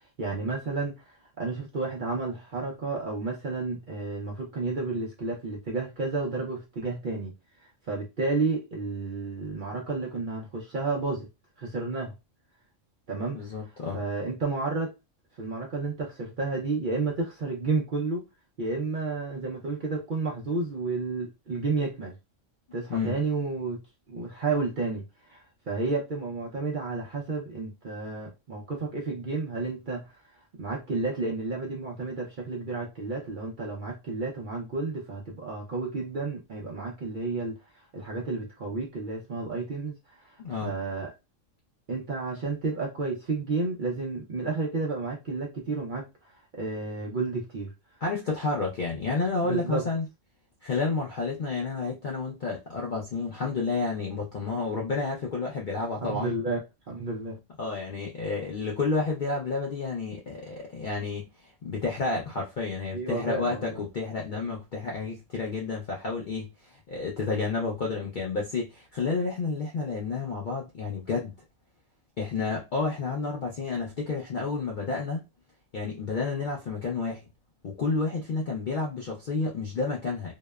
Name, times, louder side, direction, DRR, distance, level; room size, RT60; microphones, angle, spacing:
voice 1, 0.2-7.3 7.9-11.3 11.6-12.1 13.1-13.6 13.9-14.9 15.4-18.3 18.6-22.1 22.7-23.8 24.1-30.2 30.6-41.1 41.9-47.7 49.4-49.9 56.0-57.4 62.9-63.8, right 3 dB, 55° right, 0.6 m, -31 dB
voice 2, 13.3-14.0 22.9-23.2 40.4-40.7 48.0-50.0 50.6-56.3 57.6-66.5 66.9-71.3 72.2-75.2 75.7-77.3 77.6-80.4, left 4 dB, 65° left, 0.5 m, -30 dB
2.8 x 2.0 x 2.2 m
omnidirectional pair, 1.4 m